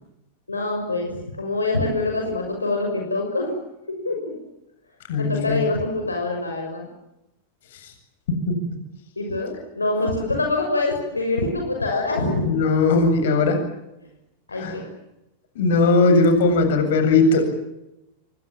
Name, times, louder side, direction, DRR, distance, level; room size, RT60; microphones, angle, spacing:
voice 1, 0.5-3.6 3.9-4.3 5.2-6.9 9.2-12.5 14.5-14.9, left 2 dB, 80° left, 1 dB, 6.2 m, -25 dB
voice 2, 5.1-5.6 8.3-8.6 12.4-13.6 14.6-14.7 15.5-17.4, left 3 dB, 55° left, 7 dB, 7.9 m, -18 dB
27.0 x 25.0 x 7.5 m, 0.90 s
figure-of-eight pair, 90°, 0 cm